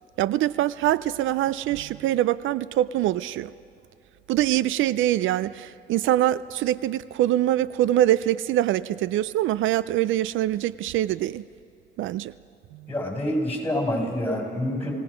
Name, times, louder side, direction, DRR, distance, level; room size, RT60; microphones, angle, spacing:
voice 1, 0.2-3.5 4.3-11.4 12.0-12.3, right 13 dB, 80° right, 17 dB, 0.4 m, -24 dB
voice 2, 12.9-14.9, left 1 dB, 10° left, 0 dB, 6.5 m, -27 dB
29.5 x 18.0 x 5.0 m, 2.6 s
cardioid pair, 90°, 20 cm